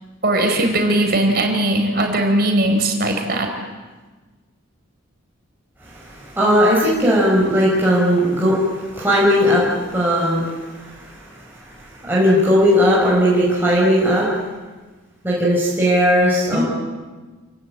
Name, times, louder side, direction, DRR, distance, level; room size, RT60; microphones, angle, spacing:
voice 1, 0.2-3.5 16.5-16.6, right 1 dB, 50° right, 4 dB, 4.5 m, -19 dB
voice 2, 6.1-8.6 8.9-11.0 12.0-14.3 15.2-16.6, equal, 10° right, -6 dB, 5.6 m, -17 dB
28.5 x 19.5 x 8.8 m, 1.3 s
head